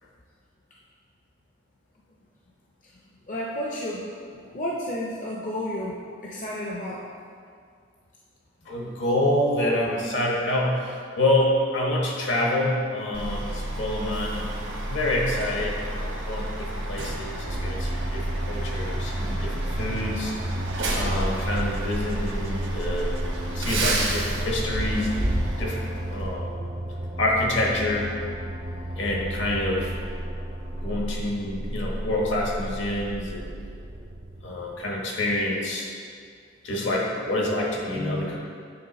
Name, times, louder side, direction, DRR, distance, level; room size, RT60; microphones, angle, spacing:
voice 1, 3.3-6.0 6.2-7.0 38.0-38.3, left 1 dB, 40° left, -4 dB, 0.5 m, -31 dB
voice 2, 8.6-20.3 20.9-23.1 23.5-25.2 25.6-26.5 27.2-28.1 29.0-29.9 30.8-33.5 34.4-35.9 36.6-38.4, left 1 dB, 70° left, -2 dB, 1.2 m, -27 dB
Truck, 13.1-26.3, right 1 dB, 80° right, 1.1 m, -30 dB
sound 1, 17.5-35.2, right 1 dB, 30° right, 0.5 m, -33 dB
8.6 x 3.4 x 4.1 m, 2.2 s
head